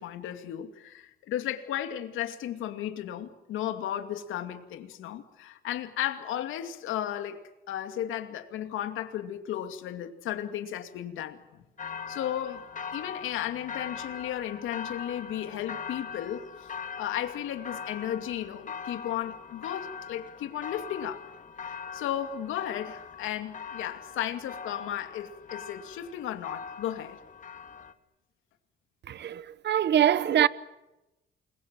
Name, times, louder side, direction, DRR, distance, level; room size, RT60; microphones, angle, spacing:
voice 1, 0.0-11.6 12.1-12.6 12.9-16.7 17.0-21.2 21.6-27.2, left 11 dB, 90° left, 2.5 m, -34 dB
sound 1, 11.8-27.9, left 6 dB, 40° left, 2.3 m, -41 dB
voice 2, 29.1-30.5, right 10 dB, 60° right, 1.1 m, -24 dB
29.0 x 22.5 x 7.6 m
cardioid pair, 90°, 20 cm